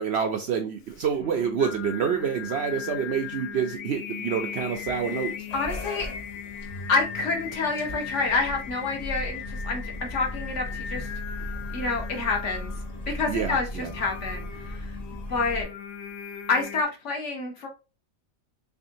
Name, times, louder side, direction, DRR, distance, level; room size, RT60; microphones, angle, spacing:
voice 1, 0.0-5.3 13.3-13.9, right 7 dB, 65° right, 4 dB, 0.7 m, -27 dB
Singing, 0.9-16.8, left 8 dB, 75° left, 1.0 m, -38 dB
sound 1, 4.7-15.6, left 1 dB, 35° left, 1.0 m, -38 dB
voice 2, 5.5-6.1 6.9-11.1 11.7-12.7 13.1-14.9 15.3-15.7 16.5-17.7, left 4 dB, 60° left, 1 dB, 1.3 m, -28 dB
3.5 x 3.4 x 2.6 m, 0.31 s
omnidirectional pair, 1.5 m